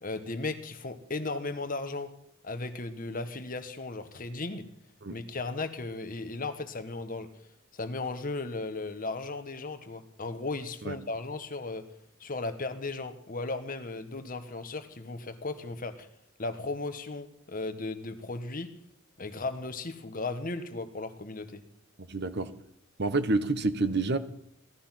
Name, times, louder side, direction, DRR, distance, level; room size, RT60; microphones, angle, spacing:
voice 1, 0.0-2.1 2.4-4.7 5.1-7.3 7.7-11.8 12.2-16.1 16.4-18.7 19.2-21.6, left 3 dB, 45° left, 9 dB, 1.4 m, -36 dB
voice 2, 22.1-22.5 23.0-24.2, right 3 dB, 55° right, 11 dB, 1.3 m, -28 dB
17.5 x 13.0 x 5.9 m, 0.72 s
head